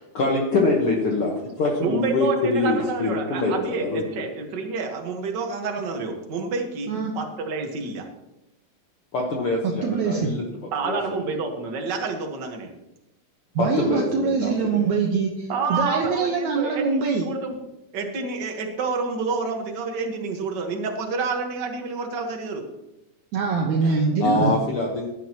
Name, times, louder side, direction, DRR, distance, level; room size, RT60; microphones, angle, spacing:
voice 1, 0.0-4.0 9.1-10.4 10.8-11.2 13.6-14.8 23.8-23.9 24.2-25.1, left 2 dB, 55° left, -1 dB, 1.7 m, -24 dB
voice 2, 1.8-8.1 10.7-12.7 15.5-17.6 17.9-22.7, right 4 dB, 50° right, 3 dB, 1.4 m, -28 dB
voice 3, 6.9-7.2 9.8-10.4 13.6-17.3 23.3-24.5, right 5 dB, 70° right, 0 dB, 2.1 m, -23 dB
15.5 x 11.0 x 3.0 m, 0.91 s
omnidirectional pair, 3.9 m